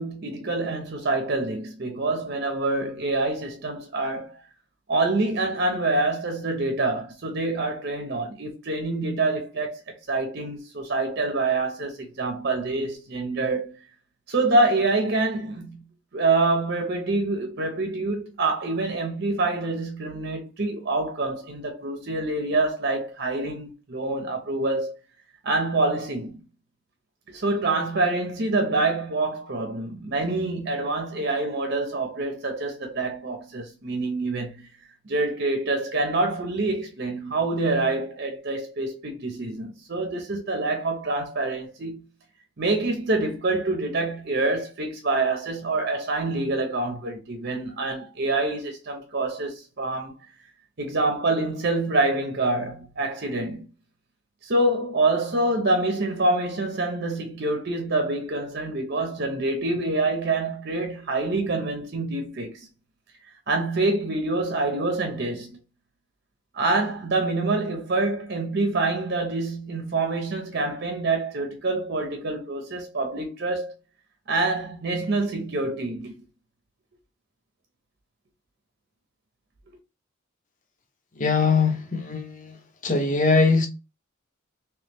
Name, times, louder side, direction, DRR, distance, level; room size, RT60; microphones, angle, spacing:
voice 1, 0.0-4.4 4.9-13.7 14.3-15.8 16.1-24.9 25.4-26.4 27.3-34.7 35.0-42.0 42.6-50.2 50.8-53.7 54.4-62.7 63.5-65.6 66.5-73.7 74.3-76.1, right 2 dB, 55° right, 0.8 m, -26 dB
voice 2, 81.2-82.6 82.8-83.7, left 4 dB, 40° left, 0.9 m, -21 dB
3.2 x 3.1 x 3.4 m
head